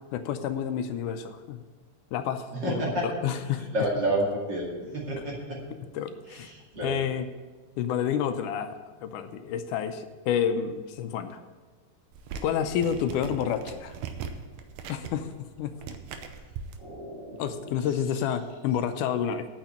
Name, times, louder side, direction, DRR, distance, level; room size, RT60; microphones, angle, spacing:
voice 1, 0.1-1.6 2.1-2.7 3.0-3.7 5.7-6.5 6.8-7.3 7.8-11.4 12.4-14.0 14.9-15.3 15.6-15.8 17.4-19.5, left 8 dB, 85° left, 8 dB, 2.2 m, -29 dB
voice 2, 2.5-3.1 3.4-5.6 6.3-6.9 16.3-16.4 16.8-17.7, right 1 dB, 40° right, -3 dB, 2.5 m, -31 dB
sound 1, 12.1-16.8, right 6 dB, 85° right, 2.4 m, -40 dB
8.9 x 6.6 x 8.5 m, 1.3 s
omnidirectional pair, 3.6 m